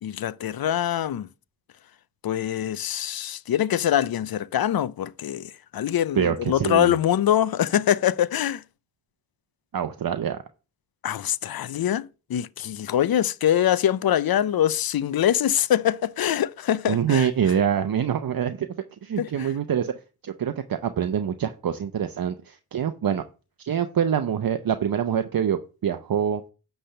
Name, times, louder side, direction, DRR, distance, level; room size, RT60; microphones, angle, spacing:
voice 1, 0.0-1.3 2.2-8.6 11.0-17.3 19.2-19.5, left 11 dB, 70° left, 0.5 m, -24 dB
voice 2, 6.1-6.9 9.7-10.4 16.9-18.7 19.0-19.9 20.2-23.2 23.6-26.4, right 8 dB, 65° right, 0.7 m, -25 dB
10.0 x 3.4 x 6.6 m
cardioid pair, 65°, 38 cm